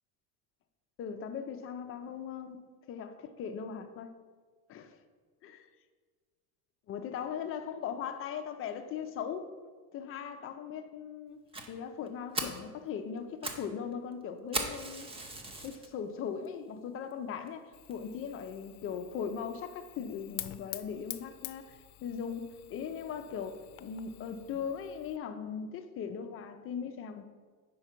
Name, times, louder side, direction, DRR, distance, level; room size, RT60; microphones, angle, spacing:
voice 1, 1.0-2.6 2.9-4.1 4.7-5.0 6.9-9.5 9.9-11.4 11.7-15.1 15.6-27.2, left 7 dB, 30° left, 8 dB, 0.5 m, -39 dB
Fire, 11.5-11.7 12.1-12.2 12.3-12.6 13.2-13.7 13.9-14.0 14.5-15.9 16.5-16.6 17.1-17.2 17.5-17.6 17.9-18.0, right 2 dB, 15° right, 0.6 m, -37 dB
Fire 2, 17.7-25.2, left 16 dB, 85° left, 0.5 m, -48 dB
4.8 x 4.5 x 5.7 m, 1.5 s
supercardioid pair, 120°, 43 cm